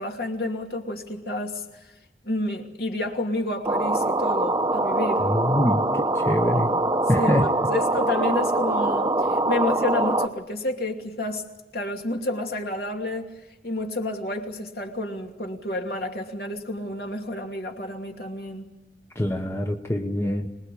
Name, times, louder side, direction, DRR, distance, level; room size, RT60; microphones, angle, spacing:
voice 1, 0.0-1.6 2.2-5.3 7.2-7.3 7.7-11.4 11.7-13.3 13.6-18.7, left 1 dB, 60° left, 2 dB, 2.8 m, -30 dB
sound 1, 3.6-10.3, right 2 dB, 20° right, 0.9 m, -23 dB
voice 2, 5.2-6.7 7.1-7.5 19.1-20.5, left 1 dB, 15° left, 3 dB, 1.1 m, -24 dB
26.0 x 20.5 x 8.6 m, 0.96 s
head